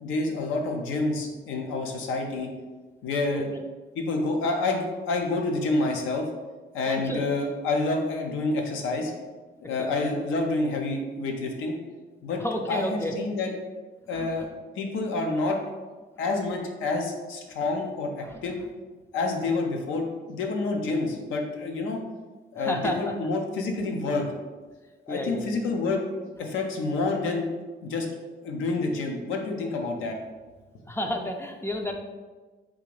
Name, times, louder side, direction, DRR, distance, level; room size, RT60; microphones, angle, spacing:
voice 1, 0.0-2.5 3.0-3.5 3.9-6.3 6.7-9.1 9.6-11.8 12.2-12.4 12.7-13.5 14.1-14.5 14.8-15.6 16.2-18.6 19.1-22.0 22.5-24.3 25.1-26.0 26.4-27.5 27.8-28.1 28.4-30.2, left 3 dB, 85° left, 2 dB, 0.6 m, -28 dB
voice 2, 6.9-7.2 9.8-9.9 12.4-13.2 14.1-14.5 18.2-18.4 22.6-23.2 25.1-25.6 30.9-31.9, equal, 10° left, 3 dB, 0.3 m, -31 dB
3.6 x 2.5 x 3.2 m, 1.3 s
cardioid pair, 90°, 20 cm